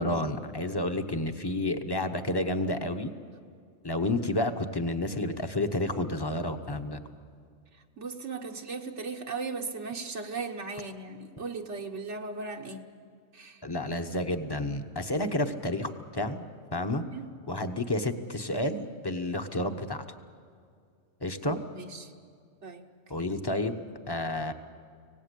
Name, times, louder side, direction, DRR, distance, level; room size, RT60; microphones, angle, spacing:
voice 1, 0.0-3.1 3.8-7.0 13.6-16.4 16.7-17.0 17.5-20.0 21.2-21.6 23.1-23.8 24.1-24.5, left 1 dB, 20° left, 7 dB, 1.1 m, -30 dB
voice 2, 8.0-12.8 13.3-13.6 17.1-17.3 21.4-22.1 22.6-22.9 23.2-23.3, right 4 dB, 70° right, 3 dB, 1.5 m, -37 dB
25.5 x 18.0 x 8.3 m, 2.2 s
omnidirectional pair, 1.3 m